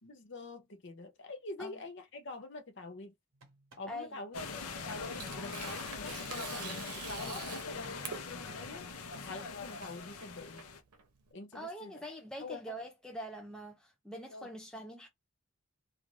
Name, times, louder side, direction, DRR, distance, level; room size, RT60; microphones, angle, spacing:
voice 1, 0.0-3.1 3.8-8.9 9.3-10.6 11.3-11.9 12.4-12.8 14.3-14.5, left 2 dB, 50° left, 0.6 m, -46 dB
sound 1, 3.3-3.9 4.7-6.0 6.7-8.2, right 2 dB, 60° right, 0.9 m, -60 dB
voice 2, 3.9-4.2 11.5-15.1, equal, 5° left, 0.4 m, -44 dB
sound 2, 4.3-10.8, left 4 dB, 85° left, 0.7 m, -42 dB
Tearing, 4.5-11.3, right 6 dB, 85° right, 0.7 m, -47 dB
2.5 x 2.4 x 3.1 m
head